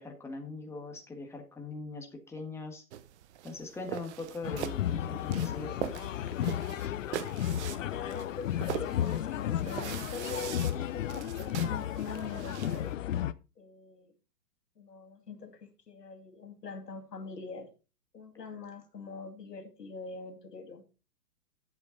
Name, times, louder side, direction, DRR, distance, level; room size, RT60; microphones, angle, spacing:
voice 1, 0.0-2.8 3.4-5.7, left 3 dB, 5° left, 1.5 m, -41 dB
sound 1, 2.9-12.9, right 11 dB, 45° right, 1.0 m, -42 dB
sound 2, 4.4-13.3, left 11 dB, 55° left, 0.7 m, -33 dB
voice 2, 7.9-13.0 13.6-14.1 14.8-17.7 18.1-20.9, left 5 dB, 80° left, 2.2 m, -43 dB
10.5 x 8.0 x 4.0 m
hypercardioid pair, 125°, 47 cm